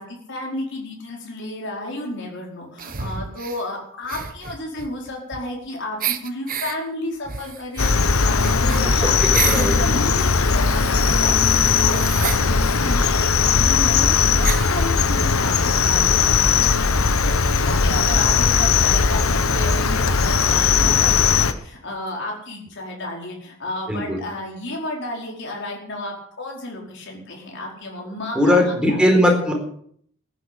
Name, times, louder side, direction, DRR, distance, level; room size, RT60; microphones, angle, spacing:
voice 1, 0.0-16.9 17.2-29.0, left 1 dB, 55° left, -1 dB, 4.9 m, -32 dB
sound 1, 2.8-3.6 4.0-5.7 6.0-6.8 7.2-9.8 10.2-12.4 13.3-13.4 13.6-13.7 14.4-14.8, right 8 dB, 40° right, 1.1 m, -31 dB
Cricket, 7.8-21.5, left 5 dB, 75° left, 1.2 m, -18 dB
voice 2, 8.9-10.0 23.9-24.2 28.3-29.5, left 1 dB, 5° right, 1 dB, 4.2 m, -19 dB
14.5 x 9.9 x 8.5 m, 0.63 s
head